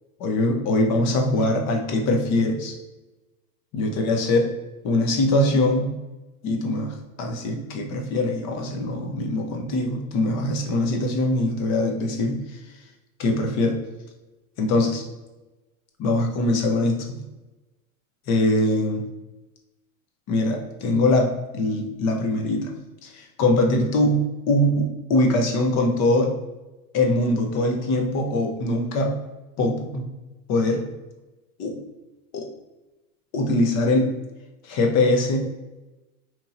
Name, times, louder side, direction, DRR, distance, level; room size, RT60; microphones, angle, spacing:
voice 1, 0.2-2.8 3.7-4.4 4.8-5.9 6.4-12.6 13.2-13.8 14.6-15.0 16.0-17.2 18.3-19.0 20.3-26.3 26.9-29.2 29.6-30.0 30.5-30.8 31.6-31.8 32.3-32.5 33.3-34.1 34.6-35.4, left 1 dB, 40° left, 2 dB, 0.8 m, -22 dB
3.0 x 2.7 x 3.8 m, 1.1 s
supercardioid pair, 120°, 42 cm